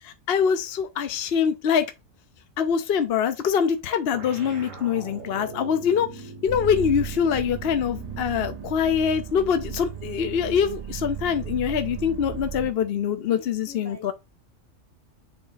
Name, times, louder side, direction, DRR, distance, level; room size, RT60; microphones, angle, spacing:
voice 1, 0.0-1.8 2.6-14.1, left 7 dB, 55° left, 0.9 m, -24 dB
sound 1, 4.1-8.9, right 3 dB, 85° right, 1.7 m, -41 dB
sound 2, 6.5-12.7, right 9 dB, 40° right, 0.6 m, -35 dB
voice 2, 13.2-14.1, left 2 dB, 85° left, 2.5 m, -45 dB
7.2 x 3.6 x 4.0 m
omnidirectional pair, 1.3 m